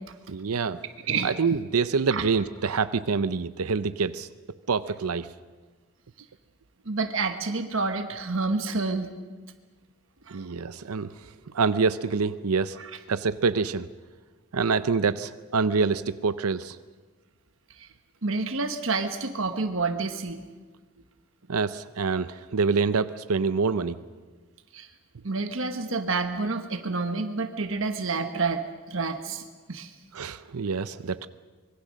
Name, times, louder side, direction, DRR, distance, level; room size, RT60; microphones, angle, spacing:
voice 1, 0.3-0.8 1.2-4.3 4.7-5.3 10.3-12.8 13.1-13.9 14.5-16.8 21.5-24.0 30.1-31.3, right 5 dB, 85° right, 13 dB, 0.6 m, -26 dB
voice 2, 6.8-9.1 10.3-10.5 12.8-12.9 17.8-17.9 18.2-20.4 24.7-24.9 25.2-29.9, right 3 dB, 65° right, 7 dB, 1.2 m, -29 dB
25.5 x 22.0 x 6.4 m, 1.4 s
head